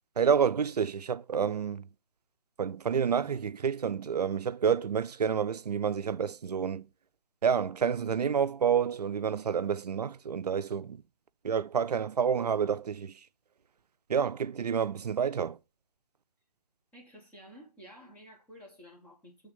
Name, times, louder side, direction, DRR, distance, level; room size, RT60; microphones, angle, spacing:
voice 1, 0.2-1.9 2.6-6.9 7.4-11.0 11.4-13.2 14.1-15.6, right 7 dB, 75° right, 0.5 m, -29 dB
voice 2, 16.9-19.5, equal, 5° left, 1.0 m, -52 dB
6.8 x 3.6 x 5.3 m
figure-of-eight pair, 150°, 21 cm